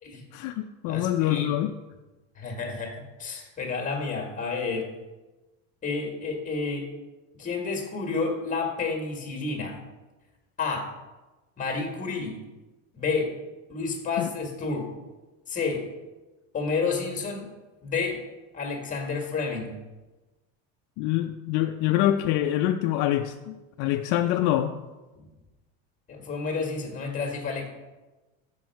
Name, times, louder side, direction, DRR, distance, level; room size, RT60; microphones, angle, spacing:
voice 1, 0.3-1.8 14.2-14.3 21.0-24.8, left 12 dB, 65° left, 5 dB, 0.5 m, -25 dB
voice 2, 0.9-1.5 2.3-2.9 3.2-4.8 5.8-6.9 7.4-9.8 10.6-10.9 11.6-12.4 12.9-13.3 13.7-14.9 15.5-15.8 16.5-17.5 17.8-18.2 18.5-19.7 25.1-25.2 26.1-27.7, left 4 dB, 25° left, 1 dB, 1.6 m, -30 dB
6.2 x 5.3 x 4.6 m, 1.1 s
supercardioid pair, 120°, 32 cm